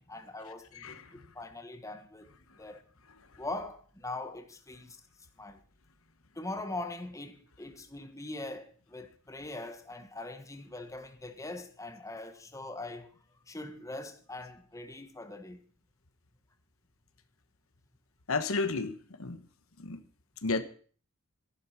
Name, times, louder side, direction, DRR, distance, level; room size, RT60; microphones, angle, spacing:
voice 1, 0.0-2.3 2.6-2.8 3.4-5.0 5.4-5.6 6.3-13.1 13.5-15.6, left 2 dB, 15° left, 1.3 m, -42 dB
voice 2, 18.3-19.4 19.8-20.0 20.4-20.6, left 3 dB, 70° left, 1.2 m, -32 dB
13.0 x 11.5 x 5.9 m
head